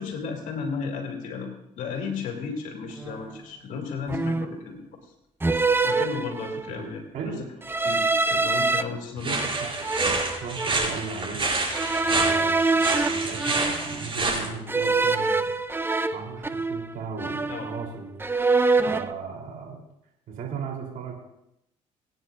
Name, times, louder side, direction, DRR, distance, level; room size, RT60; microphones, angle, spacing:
voice 1, 0.0-1.5 1.8-4.8 5.8-7.3 7.8-9.5 17.5-17.7, left 5 dB, 75° left, 2 dB, 2.9 m, -34 dB
sound 1, 3.0-3.2 4.1-4.6 5.4-6.8 7.6-8.8 9.4-10.9 11.7-14.1 14.7-16.9 17.2-17.9 18.2-19.1, right 3 dB, 15° right, 0.7 m, -25 dB
voice 2, 7.1-7.4 9.2-9.9 10.4-11.4 12.1-15.5 16.1-18.2 18.9-19.8 20.3-21.1, right 5 dB, 75° right, -1 dB, 3.6 m, -36 dB
sound 2, 9.2-14.5, right 2 dB, 40° right, 5.7 m, -28 dB
24.5 x 9.5 x 2.6 m, 0.81 s
cardioid pair, 80°, 14 cm